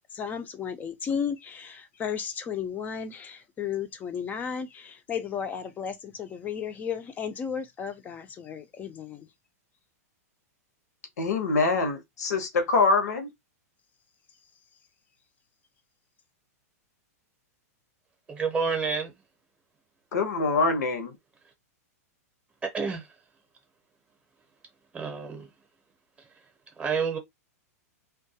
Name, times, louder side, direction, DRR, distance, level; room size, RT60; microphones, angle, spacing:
voice 1, 0.1-9.3, left 7 dB, 20° left, 0.4 m, -34 dB
voice 2, 11.2-13.3 20.1-21.1, left 3 dB, 85° left, 0.8 m, -24 dB
voice 3, 18.3-19.1 22.7-23.1 24.9-25.5 26.8-27.2, right 5 dB, 15° right, 0.7 m, -28 dB
2.2 x 2.2 x 2.7 m
hypercardioid pair, 140°, 9 cm